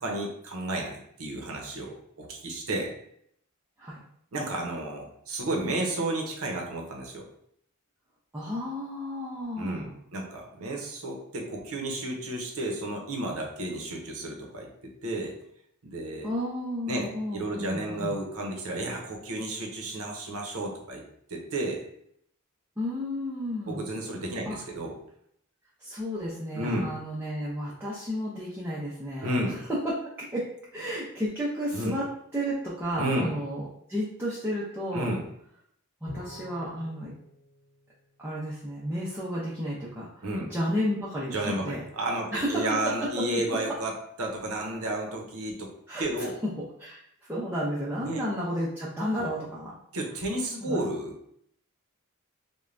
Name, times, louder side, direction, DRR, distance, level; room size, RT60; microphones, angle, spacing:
voice 1, 0.0-2.9 4.3-7.3 9.6-15.4 15.8-16.3 16.9-17.1 17.3-21.0 21.3-21.8 23.7-24.9 26.5-26.9 29.2-29.6 31.7-31.9 33.0-33.3 34.9-35.2 40.2-40.5 41.3-43.9 44.2-45.7 46.0-46.4 48.0-48.2 49.2-49.3 49.9-51.1, right 1 dB, 75° right, 1 dB, 0.7 m, -32 dB
voice 2, 8.3-9.9 16.2-18.1 22.8-23.9 24.5-24.6 25.8-29.6 29.8-30.5 30.7-32.0 32.3-35.1 36.0-37.1 38.2-41.8 42.3-43.1 45.9-46.5 46.8-47.0 47.3-49.8 50.6-50.8, equal, 10° right, -7 dB, 0.5 m, -32 dB
Bowed string instrument, 36.1-38.7, left 1 dB, 85° left, 0.7 m, -47 dB
3.2 x 2.2 x 2.5 m, 0.70 s
head